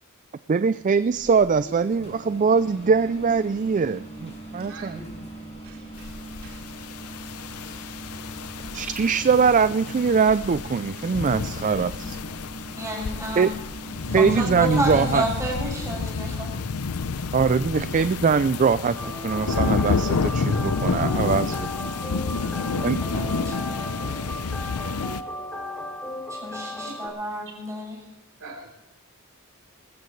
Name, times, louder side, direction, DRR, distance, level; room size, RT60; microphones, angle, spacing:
voice 1, 0.5-5.0 8.7-12.2 13.4-13.5 14.1-15.2 17.3-18.9 19.2-21.7 22.8-23.0, right 5 dB, 35° right, 14 dB, 0.4 m, -22 dB
sound 1, 0.9-16.5, right 2 dB, 30° left, 5.6 m, -41 dB
voice 2, 5.6-6.6 7.6-7.8 24.8-25.2 26.9-27.0 28.4-28.7, right 3 dB, 65° right, -1 dB, 3.5 m, -45 dB
sound 2, 6.0-25.2, left 4 dB, 85° left, 0.7 m, -29 dB
voice 3, 12.8-13.5 14.1-16.5 17.8-17.9 22.3-23.8 26.4-28.0, right 1 dB, 15° right, -3 dB, 6.9 m, -31 dB
sound 3, 18.9-27.1, left 1 dB, 5° left, 2.8 m, -35 dB
20.5 x 14.5 x 3.2 m, 0.94 s
head